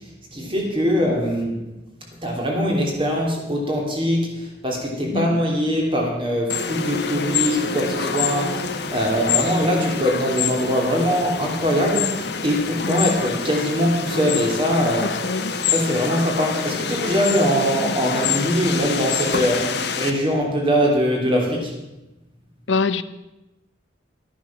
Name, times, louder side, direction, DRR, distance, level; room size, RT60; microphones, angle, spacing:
voice 1, 0.3-1.6 2.2-15.1 15.7-21.7, equal, 30° right, 0 dB, 3.1 m, -22 dB
sound 1, 6.5-20.1, left 6 dB, 60° left, 1.2 m, -26 dB
voice 2, 15.0-15.5 22.7-23.0, left 4 dB, 80° left, 13 dB, 0.7 m, -25 dB
13.0 x 10.5 x 6.1 m, 0.98 s
head